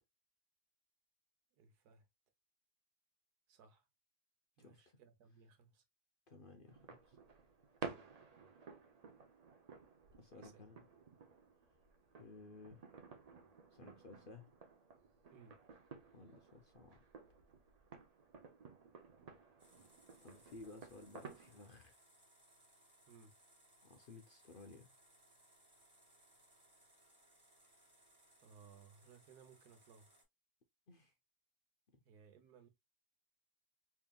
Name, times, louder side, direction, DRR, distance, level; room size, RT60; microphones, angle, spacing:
voice 1, 1.6-2.0 3.5-3.9 4.6-5.8 10.3-10.7 15.3-15.6 23.1-23.3 28.4-30.1 32.0-32.7, right 6 dB, 90° right, 1.5 m, -62 dB
voice 2, 4.6-5.0 6.3-7.2 10.2-10.9 12.2-12.9 13.7-14.5 16.1-17.0 20.2-22.0 23.8-24.9 30.9-31.1 31.9-32.0, left 3 dB, 50° left, 0.7 m, -57 dB
sound 1, 6.7-21.7, right 5 dB, 75° right, 0.3 m, -54 dB
sound 2, 19.6-30.2, right 1 dB, 15° right, 2.1 m, -68 dB
4.3 x 3.6 x 2.2 m
omnidirectional pair, 1.6 m